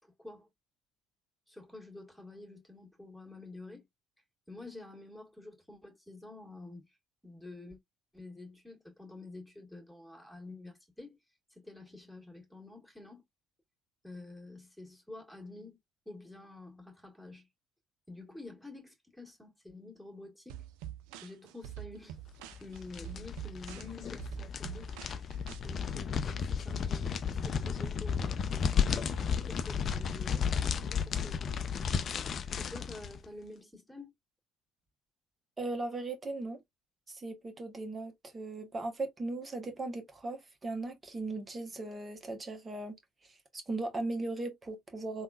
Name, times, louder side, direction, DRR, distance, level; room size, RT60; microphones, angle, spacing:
voice 1, 0.0-0.5 1.5-3.9 4.5-7.0 7.2-7.8 8.1-11.2 11.5-13.2 14.0-15.8 16.1-17.5 18.1-20.7 21.2-22.2 22.6-24.9 25.6-29.0 29.3-31.9 32.6-34.1, left 2 dB, ahead, 1.7 m, -49 dB
sound 1, 20.5-25.6, right 12 dB, 70° right, 0.4 m, -45 dB
sound 2, 22.5-33.2, left 6 dB, 45° left, 0.5 m, -33 dB
voice 2, 35.6-36.6 37.1-43.0 43.5-45.2, right 2 dB, 25° right, 1.2 m, -38 dB
3.5 x 2.4 x 2.4 m
hypercardioid pair, 60°, 0 cm